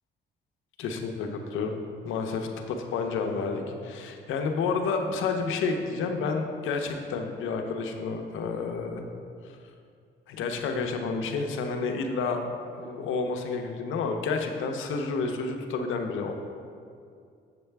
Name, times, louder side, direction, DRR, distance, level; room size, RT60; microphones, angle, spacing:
voice 1, 0.8-1.7 2.0-9.1 10.3-12.5 12.8-16.4, left 4 dB, 85° left, 4 dB, 0.8 m, -30 dB
7.4 x 6.9 x 3.4 m, 2.4 s
cardioid pair, 90°, 20 cm